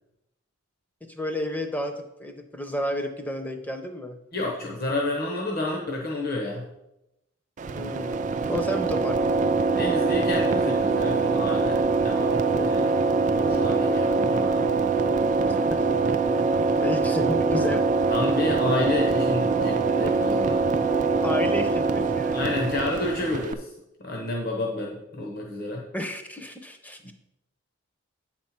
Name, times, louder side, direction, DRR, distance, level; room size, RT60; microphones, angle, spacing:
voice 1, 1.0-4.2 7.8-9.5 15.5-15.8 16.4-16.5 16.8-17.8 21.2-22.5 25.9-27.1, left 1 dB, 10° left, 6 dB, 0.6 m, -32 dB
voice 2, 4.3-6.7 9.8-13.0 13.3-14.7 18.1-20.7 22.3-23.7 24.0-25.8 27.0-27.1, left 2 dB, 45° left, -1 dB, 1.0 m, -30 dB
sound 1, 7.6-23.5, right 4 dB, 35° right, 0.3 m, -23 dB
8.4 x 4.3 x 5.9 m, 0.91 s
head